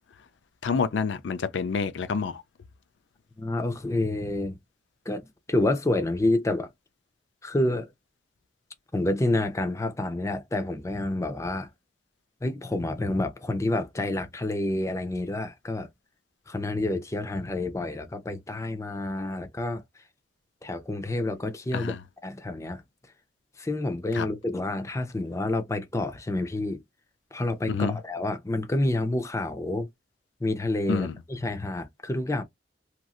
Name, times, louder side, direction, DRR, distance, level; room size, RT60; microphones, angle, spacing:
voice 1, 0.6-2.4 21.7-22.0 24.1-24.3 27.7-28.0 30.9-31.2, left 5 dB, 85° left, 0.4 m, -28 dB
voice 2, 3.4-4.6 5.1-5.2 5.5-6.7 7.4-7.9 8.9-11.7 12.4-15.9 16.5-19.8 20.6-21.9 22.2-22.8 23.6-26.8 27.3-29.9 30.4-32.4, left 2 dB, 15° left, 0.5 m, -28 dB
3.0 x 2.5 x 2.3 m
head